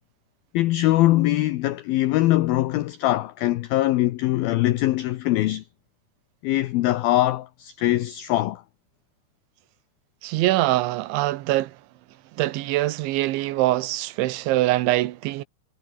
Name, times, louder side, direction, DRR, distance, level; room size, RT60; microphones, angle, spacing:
voice 1, 0.5-5.7 6.4-8.6, left 16 dB, 90° left, 2.1 m, -22 dB
voice 2, 10.2-11.7 12.4-15.4, right 17 dB, 80° right, 3.5 m, -23 dB
omnidirectional pair, 5.4 m